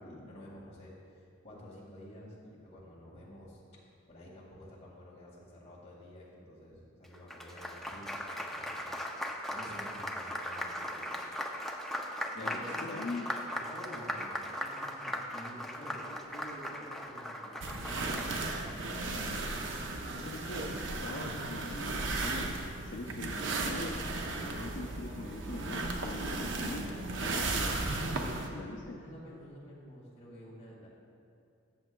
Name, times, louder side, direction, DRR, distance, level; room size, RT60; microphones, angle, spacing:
voice 1, 0.0-11.3 12.4-13.1 13.7-18.6 26.6-26.7 28.0-30.9, equal, 35° left, -5 dB, 1.9 m, -50 dB
Applause, 7.0-18.7, equal, ahead, 0.4 m, -38 dB
voice 2, 12.3-13.3 20.1-20.7 21.0-24.1 24.4-26.9 27.2-27.9 28.5-29.0, left 2 dB, 60° left, -1 dB, 0.5 m, -43 dB
Chair on carpet, 17.6-28.5, right 2 dB, 65° right, 0.7 m, -35 dB
13.5 x 7.2 x 2.2 m, 2.5 s
head